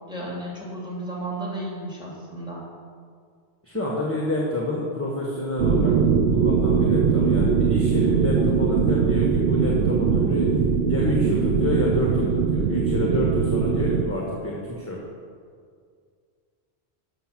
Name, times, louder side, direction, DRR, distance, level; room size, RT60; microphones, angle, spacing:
voice 1, 0.1-2.6, right 1 dB, 5° right, -4 dB, 2.9 m, -33 dB
voice 2, 3.6-6.0 6.3-10.5 10.9-15.0, left 1 dB, 10° left, -3 dB, 1.3 m, -28 dB
sound 1, 5.6-14.0, right 6 dB, 70° right, 0.9 m, -21 dB
12.5 x 6.4 x 6.0 m, 2.1 s
omnidirectional pair, 1.2 m